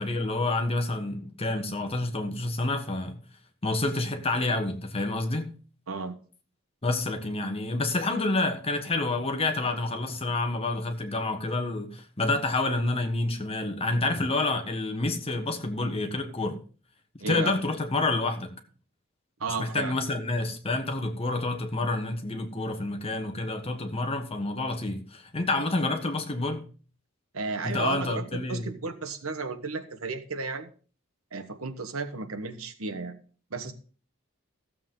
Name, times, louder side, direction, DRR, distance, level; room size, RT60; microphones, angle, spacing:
voice 1, 0.0-3.2 3.6-5.6 6.8-16.6 17.3-18.5 19.6-26.7 27.6-28.7, left 2 dB, 30° left, 1.3 m, -28 dB
voice 2, 17.2-17.6 19.4-20.0 27.3-30.7 31.3-33.2 33.5-33.7, right 4 dB, 90° right, 1.2 m, -33 dB
14.5 x 7.6 x 3.8 m
head